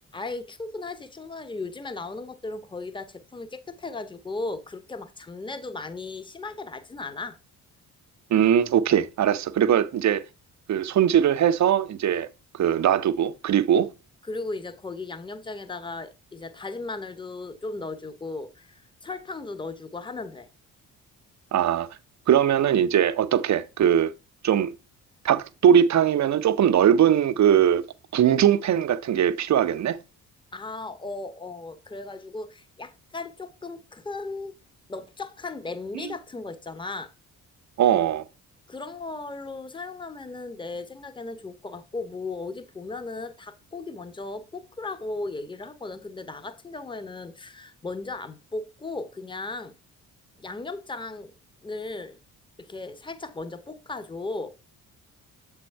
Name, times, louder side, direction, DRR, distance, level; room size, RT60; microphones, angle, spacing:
voice 1, 0.1-7.4 14.2-20.5 30.5-34.5 34.9-37.1 38.7-49.7 50.4-51.3 51.6-52.2 52.6-54.5, left 3 dB, 10° left, 0.8 m, -36 dB
voice 2, 8.3-10.2 10.7-12.3 12.5-13.9 21.5-21.9 22.3-24.1 24.4-24.7 25.2-27.8 28.1-30.0 35.9-36.1 37.8-38.2, right 9 dB, 40° right, 0.6 m, -20 dB
7.6 x 3.4 x 4.5 m
hypercardioid pair, 45°, 45 cm